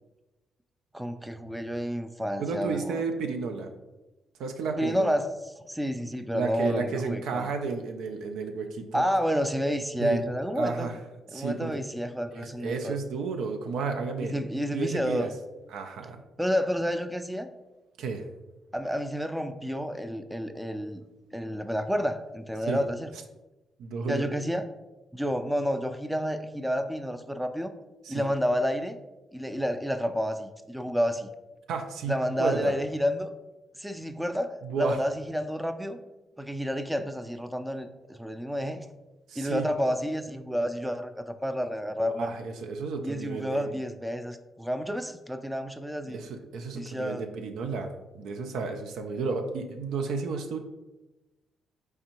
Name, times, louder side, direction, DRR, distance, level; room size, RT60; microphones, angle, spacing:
voice 1, 0.9-3.0 4.8-5.3 5.7-7.5 8.9-10.9 11.3-13.0 14.2-15.3 16.4-17.5 18.7-21.0 21.3-23.1 24.1-24.7 25.1-27.7 28.1-29.0 29.3-31.3 32.1-33.3 33.8-36.0 36.4-38.9 39.4-42.3 43.0-46.2 46.7-47.3, equal, 5° right, 9 dB, 0.4 m, -30 dB
voice 2, 2.4-3.7 4.4-5.1 6.3-9.0 10.0-10.2 10.6-11.0 11.3-11.7 12.3-14.3 14.7-15.3 15.7-16.2 18.0-18.2 22.6-22.8 23.8-24.3 28.0-28.3 31.7-32.7 34.6-35.0 39.3-39.6 42.0-43.7 46.1-47.9 48.1-50.6, right 4 dB, 75° right, 5 dB, 0.4 m, -32 dB
4.3 x 3.3 x 2.9 m, 1.1 s
hypercardioid pair, 50°, 0 cm